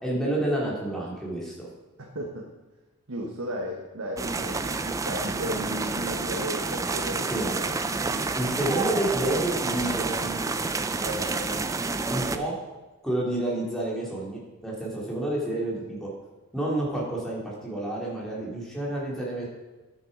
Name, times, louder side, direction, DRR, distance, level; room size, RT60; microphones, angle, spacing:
voice 1, 0.0-1.5 7.0-7.5 8.3-10.5 11.0-11.6 12.0-12.5 13.0-16.1 16.5-19.5, right 1 dB, ahead, -5 dB, 2.4 m, -29 dB
voice 2, 2.1-2.5 3.1-7.7 8.0-8.3, equal, 65° right, -1 dB, 1.2 m, -35 dB
sound 1, 4.2-12.4, right 3 dB, 15° right, 0.3 m, -29 dB
10.5 x 6.8 x 5.0 m, 1.1 s
head